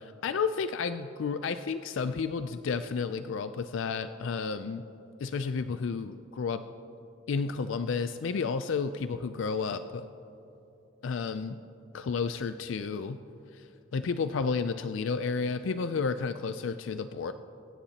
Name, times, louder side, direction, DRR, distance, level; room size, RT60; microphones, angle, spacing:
voice 1, 0.0-4.9 5.2-6.6 7.3-10.1 11.0-11.6 11.9-13.2 13.5-17.3, left 5 dB, 70° left, 10 dB, 0.4 m, -31 dB
24.0 x 9.9 x 2.9 m, 2.9 s
head